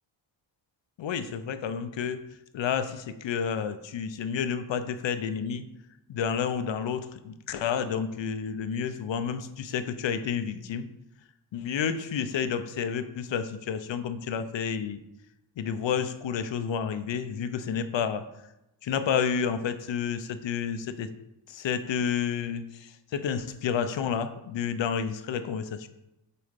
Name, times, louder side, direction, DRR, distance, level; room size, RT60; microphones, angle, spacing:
voice 1, 1.0-2.2 2.5-5.6 6.1-10.9 11.5-15.0 15.6-18.2 18.8-21.1 21.5-25.9, left 7 dB, 70° left, 10 dB, 0.7 m, -30 dB
6.8 x 4.2 x 5.2 m, 0.91 s
wide cardioid pair, 100°, 46 cm